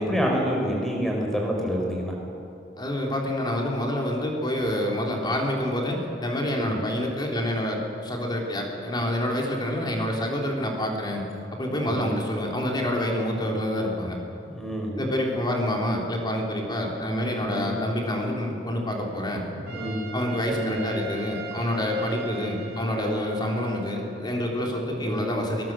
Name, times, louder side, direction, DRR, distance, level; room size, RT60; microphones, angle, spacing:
voice 1, 0.0-2.1 6.6-6.8 11.8-12.1 13.4-13.6 14.5-14.9 17.4-17.7 19.5-20.0 20.5-20.8 22.3-22.5 24.9-25.2, equal, ahead, -1 dB, 5.0 m, -28 dB
voice 2, 2.8-11.2 11.5-14.2 14.9-19.4 20.1-25.7, left 1 dB, 25° left, 0 dB, 3.5 m, -27 dB
Trumpet, 19.7-24.3, right 3 dB, 60° right, 3.3 m, -40 dB
23.0 x 19.0 x 7.6 m, 2.7 s
head